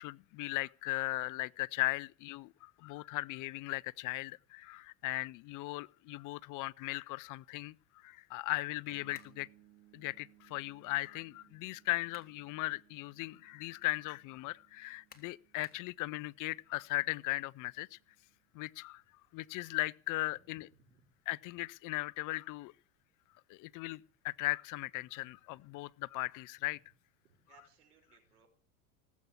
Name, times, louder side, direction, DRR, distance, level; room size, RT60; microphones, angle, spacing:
voice 1, 0.0-9.5 9.9-18.0 18.5-19.0 19.3-20.7 21.3-22.7 23.5-26.8, left 20 dB, 45° left, 0.6 m, -38 dB
sound 1, 8.9-18.5, right 14 dB, 60° right, 2.3 m, -67 dB
sound 2, 9.1-9.4 11.8-12.4 12.9-13.0 15.1-15.9, left 6 dB, 20° left, 2.7 m, -58 dB
voice 2, 20.6-21.1 27.3-28.5, right 6 dB, 90° right, 6.1 m, -65 dB
18.5 x 8.4 x 8.4 m
hypercardioid pair, 95°, 45 cm